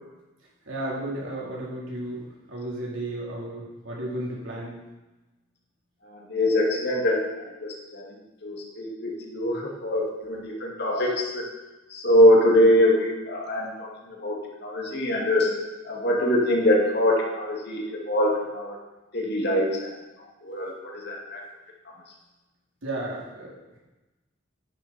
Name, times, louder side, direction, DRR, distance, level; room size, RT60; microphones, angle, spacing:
voice 1, 0.7-2.2 2.5-4.8 22.8-23.5, right 1 dB, 75° right, -5 dB, 3.8 m, -33 dB
voice 2, 6.0-11.5 11.9-15.5 15.8-18.8 19.1-19.9 20.4-21.4 21.9-22.0, left 1 dB, 55° left, -1 dB, 2.3 m, -23 dB
10.5 x 10.5 x 4.4 m, 1.1 s
head